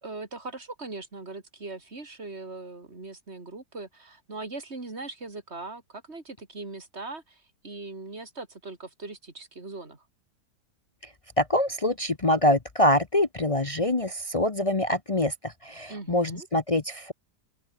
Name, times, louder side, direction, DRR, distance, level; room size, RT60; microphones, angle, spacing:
voice 1, 0.0-10.0 15.9-16.5, right 3 dB, 40° right, 3.7 m, -40 dB
voice 2, 11.4-17.1, left 1 dB, 25° left, 0.8 m, -25 dB
open air
omnidirectional pair, 1.7 m